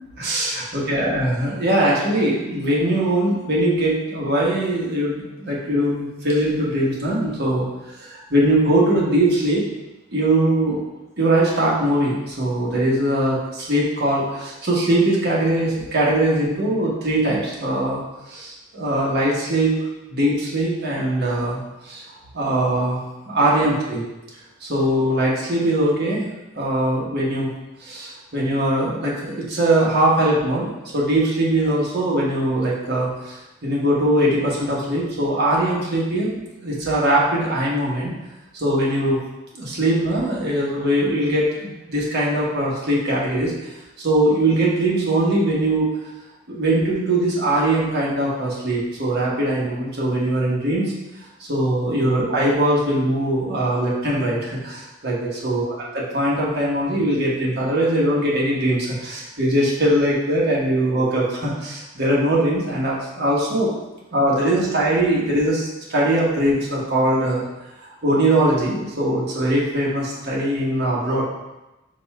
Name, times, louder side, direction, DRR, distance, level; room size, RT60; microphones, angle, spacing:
voice 1, 0.2-7.7 8.0-9.6 10.1-10.9 11.2-19.8 20.1-22.0 22.3-23.0 23.2-24.0 24.6-26.3 26.5-27.5 27.8-38.1 38.5-39.2 39.5-45.9 46.5-50.9 51.4-55.7 55.9-63.7 64.1-67.4 67.8-71.2, right 1 dB, 55° right, -5 dB, 1.1 m, -21 dB
5.2 x 2.4 x 4.2 m, 1.0 s
head